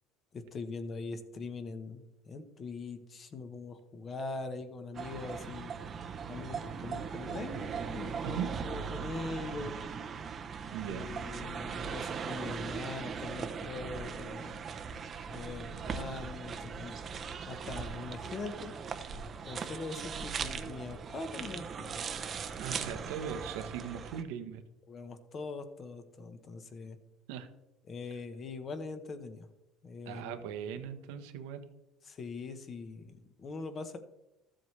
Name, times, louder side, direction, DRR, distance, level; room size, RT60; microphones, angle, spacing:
voice 1, 0.3-5.7 6.3-9.9 10.9-14.6 15.3-17.0 17.4-18.7 19.4-22.0 23.9-24.0 24.9-27.0 27.9-29.5 29.8-30.4 32.0-34.0, left 3 dB, 30° left, 9 dB, 1.0 m, -42 dB
sound 1, 5.0-24.2, right 6 dB, 30° right, 0.7 m, -39 dB
voice 2, 10.7-11.2 15.7-16.2 22.6-24.6 27.3-27.5 30.0-31.7, right 8 dB, 85° right, 8 dB, 1.0 m, -39 dB
13.5 x 7.7 x 3.3 m, 0.94 s
cardioid pair, 140°, 0 cm